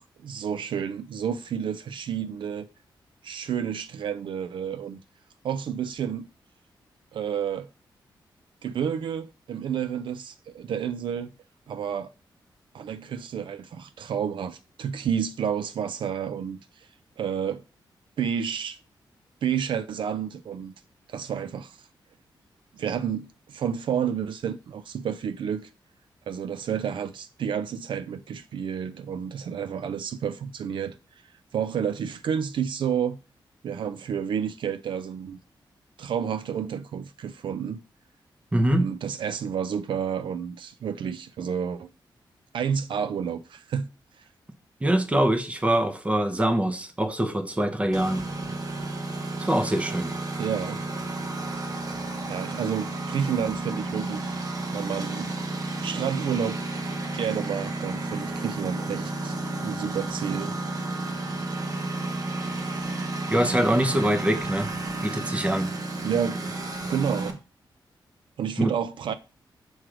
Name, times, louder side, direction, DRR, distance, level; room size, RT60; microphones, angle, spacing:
voice 1, 0.0-2.7 3.2-5.0 5.4-6.3 7.1-7.7 8.6-11.3 11.7-12.1 12.7-16.9 17.2-17.6 18.2-18.8 19.4-20.7 21.1-21.8 22.7-25.7 26.3-30.9 31.5-33.2 33.6-35.4 36.0-37.8 38.7-41.9 42.5-43.9 44.2-44.3 50.4-50.8 52.3-54.4 54.7-55.3 55.8-56.6 57.1-59.4 59.6-60.5 66.0-66.4 66.9-67.4 68.4-69.1, right 8 dB, 75° right, 0.4 m, -30 dB
voice 2, 38.5-38.9 44.8-48.3 49.4-50.1 63.3-64.7 65.0-65.7 68.6-68.7, right 1 dB, 15° right, 0.8 m, -24 dB
Engine, 47.9-67.3, right 2 dB, 45° right, 0.9 m, -32 dB
6.2 x 3.0 x 4.9 m
wide cardioid pair, 115°, 8 cm